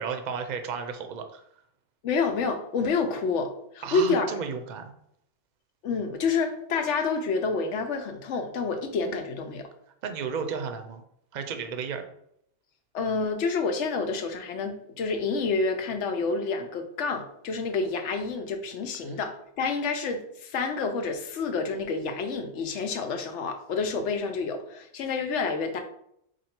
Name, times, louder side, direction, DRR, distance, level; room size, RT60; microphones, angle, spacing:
voice 1, 0.0-1.4 3.8-4.9 10.0-11.0 11.3-12.1 19.0-19.2, right 6 dB, 50° right, 7 dB, 0.6 m, -33 dB
voice 2, 2.0-4.4 5.8-9.7 12.9-25.8, left 4 dB, 85° left, 5 dB, 1.0 m, -28 dB
4.5 x 2.6 x 4.3 m, 0.73 s
omnidirectional pair, 1.2 m